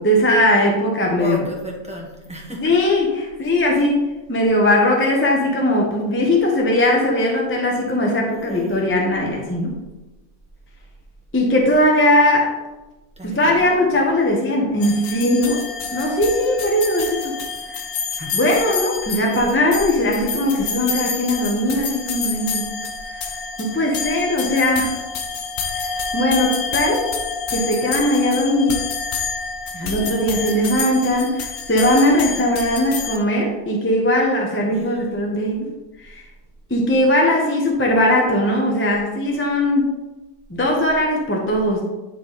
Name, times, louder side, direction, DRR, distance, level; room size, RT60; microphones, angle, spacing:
voice 1, 0.0-1.4 2.6-9.7 11.3-12.5 13.2-15.6 15.9-17.3 17.7-17.8 18.2-22.7 23.2-23.3 23.6-24.9 25.7-27.1 27.5-28.8 29.7-35.7 36.0-36.2 36.7-39.9 40.5-41.8, left 1 dB, 10° left, -1 dB, 0.8 m, -19 dB
voice 2, 1.1-2.6 3.4-3.8 8.3-8.8 13.2-14.1 34.6-35.0, right 1 dB, 5° right, -3 dB, 1.1 m, -34 dB
sound 1, 14.8-33.2, left 5 dB, 85° left, 1.3 m, -28 dB
9.4 x 3.4 x 4.0 m, 1.1 s
omnidirectional pair, 1.5 m